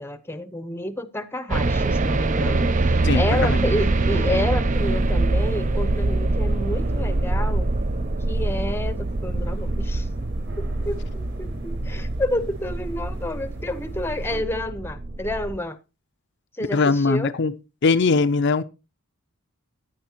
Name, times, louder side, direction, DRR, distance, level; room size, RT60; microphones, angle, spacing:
voice 1, 0.0-7.7 8.3-10.1 10.6-15.8 16.6-17.4, left 1 dB, 10° left, 0.8 m, -29 dB
sound 1, 1.5-15.6, right 2 dB, 35° right, 0.5 m, -24 dB
voice 2, 3.0-3.6 11.8-11.9 16.7-17.5 17.8-18.6, left 4 dB, 50° left, 0.5 m, -20 dB
sound 2, 4.7-14.4, left 1 dB, 50° right, 4.7 m, -40 dB
15.0 x 9.9 x 2.9 m
head